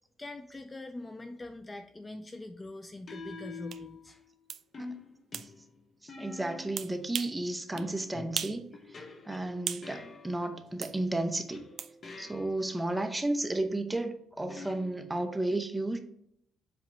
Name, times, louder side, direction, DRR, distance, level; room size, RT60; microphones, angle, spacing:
voice 1, 0.2-4.2, left 2 dB, 20° left, 0.4 m, -43 dB
sound 1, 1.0-1.3 3.1-4.3 4.7-6.9 7.7-10.7 11.5-12.8 14.5-15.4, left 3 dB, 35° left, 1.0 m, -47 dB
sound 2, 3.7-3.8 4.5-4.6 5.3-5.5 6.8-7.4 7.8-7.9 8.4-8.6 9.0-9.9 10.8-11.0 11.8-11.9, right 9 dB, 60° right, 0.4 m, -37 dB
voice 2, 6.0-11.6 12.2-16.0, right 2 dB, 10° right, 0.7 m, -33 dB
7.7 x 3.0 x 5.2 m
cardioid pair, 130°, 0 cm